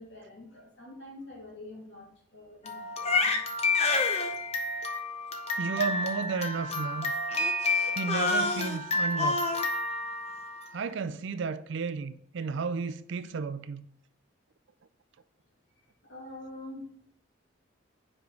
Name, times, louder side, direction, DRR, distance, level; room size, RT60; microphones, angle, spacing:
voice 1, 0.0-3.3 16.0-17.1, left 2 dB, 55° left, 2.1 m, -46 dB
Crying sobbing, 2.7-10.8, left 3 dB, 30° left, 0.6 m, -29 dB
voice 2, 5.6-7.1 7.9-9.4 10.7-13.9, right 5 dB, 60° right, 0.4 m, -33 dB
5.3 x 4.9 x 4.5 m
head